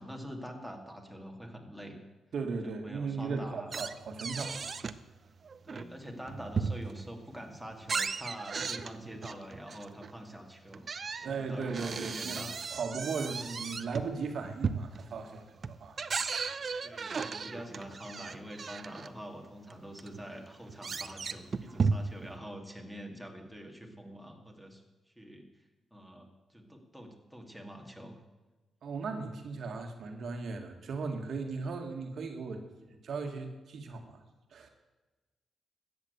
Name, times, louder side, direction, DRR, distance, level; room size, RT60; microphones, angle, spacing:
voice 1, 0.0-2.0 2.6-3.7 5.6-12.6 16.8-25.5 25.9-28.2, equal, ahead, 3 dB, 2.6 m, -45 dB
voice 2, 2.3-4.7 11.2-16.0 28.8-34.2 34.5-34.7, right 4 dB, 65° right, 4 dB, 1.8 m, -37 dB
sound 1, 3.7-5.0 5.4-7.1 7.5-10.1 10.7-19.1 19.7-19.8 20.0-22.3, right 5 dB, 45° right, 0.7 m, -36 dB
13.5 x 8.8 x 8.2 m, 1.2 s
cardioid pair, 90°, 0 cm